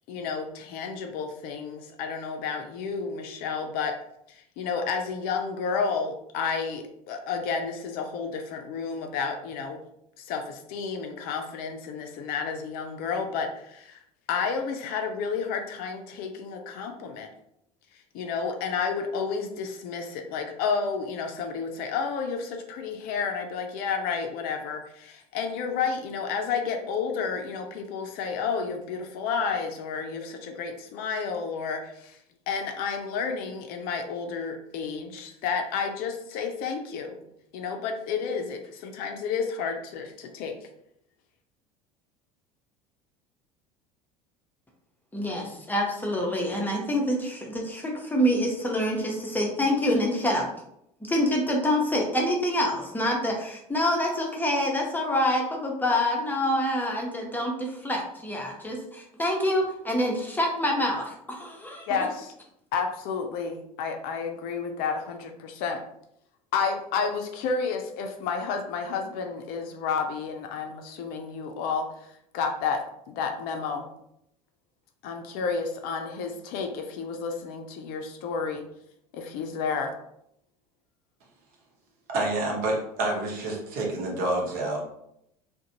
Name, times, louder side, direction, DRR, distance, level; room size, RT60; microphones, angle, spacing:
voice 1, 0.1-4.0 4.3-9.8 10.2-14.0 14.3-17.3 17.9-32.2 32.5-37.2 37.5-40.6 61.9-62.3 62.7-65.8 66.5-73.9 75.0-78.6 79.1-79.9, left 5 dB, 55° left, 4 dB, 0.4 m, -31 dB
voice 2, 45.1-50.5 51.0-61.9, left 1 dB, 10° left, -1 dB, 0.7 m, -26 dB
voice 3, 82.1-84.8, right 2 dB, 50° right, 0 dB, 0.9 m, -28 dB
2.4 x 2.2 x 2.8 m, 0.76 s
hypercardioid pair, 70°, 19 cm